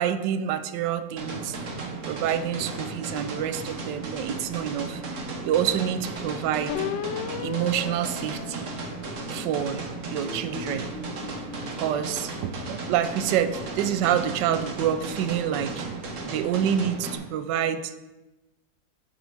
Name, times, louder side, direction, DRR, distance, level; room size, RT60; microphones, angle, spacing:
voice 1, 0.0-1.6 2.1-6.7 7.4-8.7 9.3-9.8 10.1-10.9 11.7-15.8 16.2-18.0, right 9 dB, 75° right, 11 dB, 1.2 m, -27 dB
sound 1, 1.2-17.2, right 3 dB, 50° right, 1.3 m, -35 dB
sound 2, 6.7-9.4 10.0-12.5, left 9 dB, 80° left, 1.3 m, -37 dB
7.5 x 6.7 x 4.7 m, 1.1 s
omnidirectional pair, 2.0 m